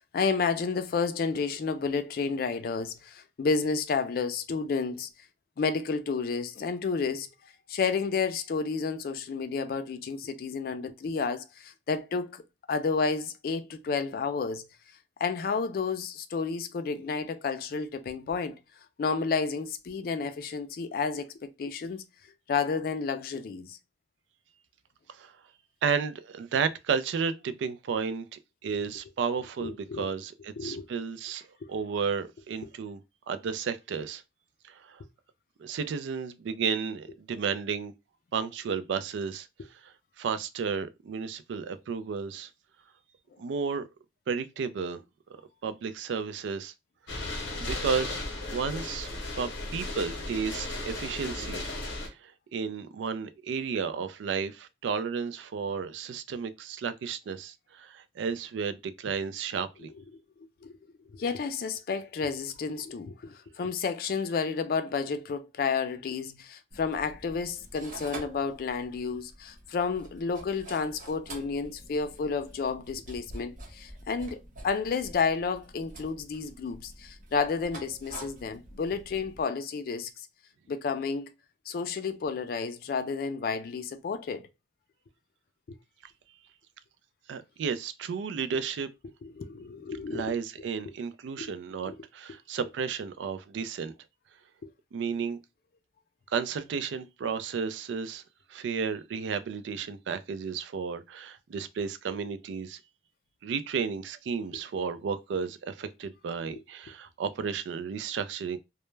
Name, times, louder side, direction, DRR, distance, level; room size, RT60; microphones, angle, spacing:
voice 1, 0.1-5.1 5.6-7.3 7.7-12.4 12.7-14.7 15.2-18.6 19.0-22.0 22.5-23.8 29.6-30.1 30.6-30.9 31.6-31.7 60.6-60.8 61.1-74.4 74.6-80.1 80.7-81.3 81.7-84.5 89.2-90.3 91.4-91.5 91.9-92.0 94.6-94.7 106.5-106.6, left 5 dB, 50° left, 0.3 m, -31 dB
voice 2, 25.8-33.0 33.3-34.2 34.7-35.0 35.6-37.9 38.3-39.5 39.8-42.5 43.4-43.9 44.3-45.0 45.6-46.7 47.1-47.2 47.6-48.2 48.5-49.1 49.4-51.6 52.0-59.9 87.3-88.9 90.1-93.9 94.9-95.4 96.3-98.2 98.5-102.8 103.4-108.6, right 6 dB, 85° right, 0.3 m, -33 dB
sound 1, 47.1-52.1, left 2 dB, 90° left, 0.8 m, -35 dB
sound 2, 66.7-79.4, right 2 dB, 45° right, 0.6 m, -47 dB
2.1 x 2.0 x 3.1 m
head